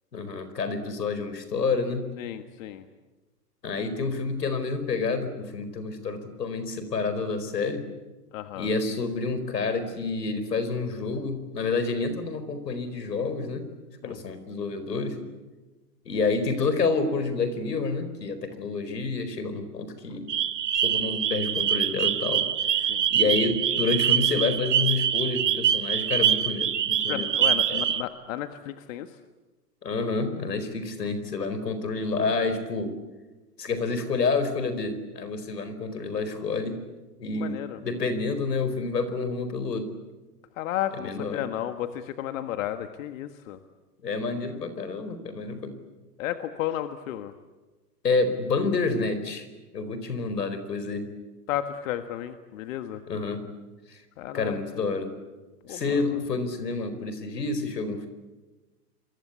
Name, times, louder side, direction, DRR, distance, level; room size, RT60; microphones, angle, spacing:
voice 1, 0.1-2.1 3.6-7.8 8.6-13.6 14.0-15.2 16.0-20.3 20.8-22.4 23.1-27.3 27.7-27.8 29.8-32.9 33.6-36.8 37.2-39.9 41.0-41.4 44.0-45.7 48.0-49.5 49.7-51.1 53.1-53.4 53.9-54.0 54.3-55.1 55.7-58.1, left 4 dB, 85° left, 10 dB, 4.7 m, -28 dB
voice 2, 2.2-2.9 8.3-8.7 14.0-14.3 22.8-23.1 27.1-29.2 37.3-37.8 40.5-43.6 46.2-47.3 51.5-53.0 54.2-54.6 55.7-56.2, left 12 dB, 55° left, 9 dB, 1.7 m, -33 dB
sound 1, 20.3-28.0, right 9 dB, 80° right, 1.9 m, -24 dB
29.0 x 23.0 x 8.3 m, 1.2 s
hypercardioid pair, 120°, 47 cm